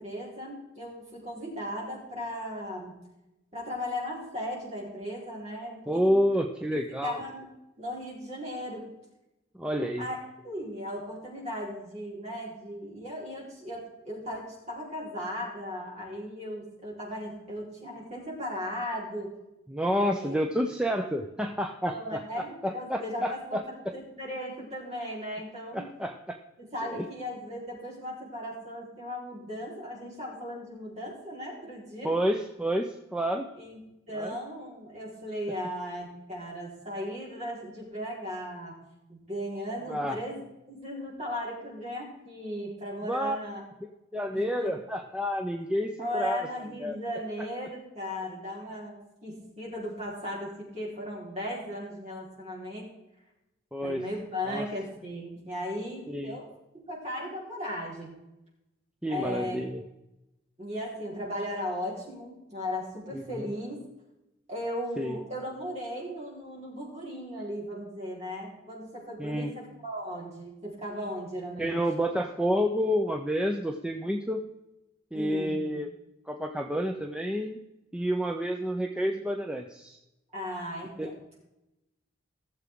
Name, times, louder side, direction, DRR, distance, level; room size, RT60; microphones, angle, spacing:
voice 1, 0.0-3.0 3.5-6.1 7.0-7.5 7.8-8.9 10.0-10.2 10.4-19.3 20.0-20.4 21.9-25.9 26.6-32.1 33.6-33.8 34.1-38.7 39.1-40.4 40.7-43.6 44.3-44.7 46.0-52.9 53.8-56.5 56.9-58.1 59.1-59.6 60.6-63.8 64.5-71.8 75.1-75.7 80.3-81.1, equal, 35° right, -4 dB, 4.4 m, -37 dB
voice 2, 5.9-7.2 9.6-10.1 19.7-23.6 25.7-26.4 26.9-27.0 32.0-33.5 34.2-34.3 39.9-40.2 43.0-43.4 44.1-46.4 46.8-47.0 53.7-54.0 54.5-54.6 56.1-56.4 59.0-59.8 63.1-63.4 65.0-65.2 69.2-69.5 71.6-74.4 75.1-75.9 76.3-77.6 77.9-80.0 81.0-81.1, equal, 5° right, 3 dB, 0.6 m, -29 dB
17.0 x 7.2 x 3.8 m, 0.93 s
head